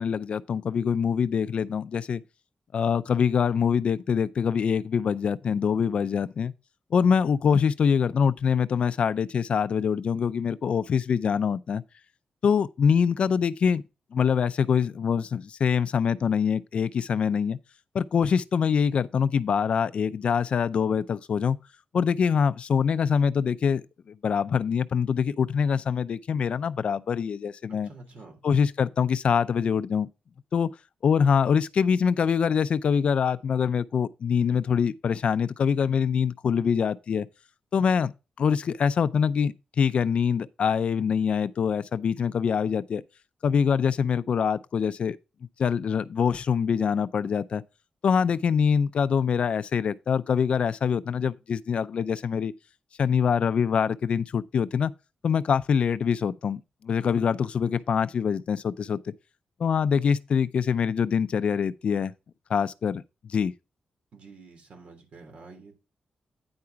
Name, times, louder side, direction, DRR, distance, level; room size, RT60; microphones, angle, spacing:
voice 1, 0.0-2.2 2.7-6.5 6.9-11.8 12.4-13.8 14.1-17.6 17.9-21.6 21.9-27.9 28.4-30.1 30.5-30.7 31.0-37.3 37.7-38.1 38.4-43.0 43.4-45.2 45.6-47.6 48.0-52.5 53.0-54.9 55.2-59.1 59.6-62.1 62.5-63.0 63.3-63.5, left 7 dB, 55° left, 0.4 m, -24 dB
voice 2, 27.7-28.4 64.1-65.7, right 3 dB, 65° right, 3.3 m, -48 dB
9.5 x 4.8 x 4.5 m
wide cardioid pair, 160°, 2 cm